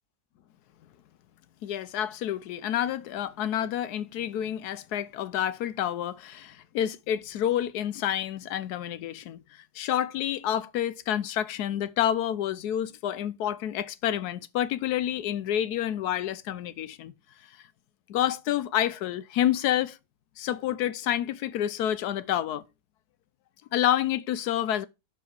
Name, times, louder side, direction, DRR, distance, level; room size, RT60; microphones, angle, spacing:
voice 1, 1.6-17.1 18.1-20.0 20.4-22.6 23.7-24.9, left 11 dB, 75° left, 1.1 m, -29 dB
6.3 x 5.7 x 4.7 m
omnidirectional pair, 1.7 m